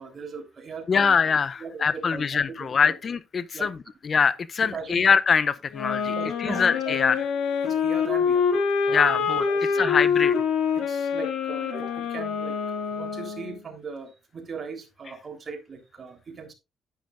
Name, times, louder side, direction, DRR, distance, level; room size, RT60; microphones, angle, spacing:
voice 1, 0.0-1.2 1.6-2.4 2.8-3.0 3.5-3.7 4.6-5.1 6.2-7.2 7.6-9.9 10.7-16.5, right 4 dB, 40° right, 3.6 m, -39 dB
voice 2, 0.9-3.8 4.0-6.1 6.4-7.2 8.9-9.4 9.8-10.4, left 6 dB, 45° left, 0.5 m, -23 dB
sound 1, 5.7-13.6, left 6 dB, 85° left, 2.3 m, -25 dB
10.5 x 10.0 x 2.5 m
cardioid pair, 90°, 0 cm